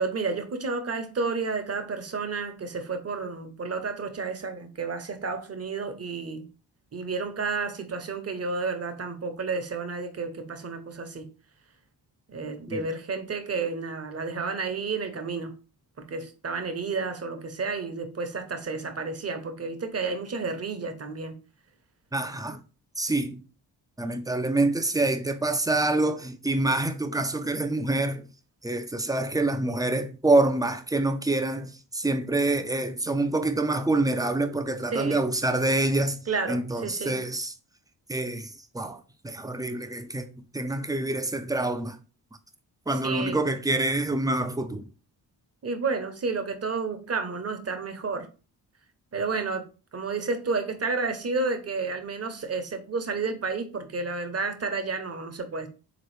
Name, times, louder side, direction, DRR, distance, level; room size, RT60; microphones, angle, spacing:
voice 1, 0.0-6.5 6.9-11.3 12.3-15.6 16.0-21.4 34.9-35.2 36.3-37.2 42.9-43.5 45.6-48.3 49.1-49.7 49.9-55.7, right 4 dB, 35° right, 0.9 m, -31 dB
voice 2, 22.1-22.6 23.0-23.4 24.0-28.2 28.6-36.2 36.5-37.5 38.1-42.0 42.9-44.9, right 2 dB, 10° right, 0.4 m, -26 dB
3.7 x 2.9 x 3.2 m
supercardioid pair, 45°, 45 cm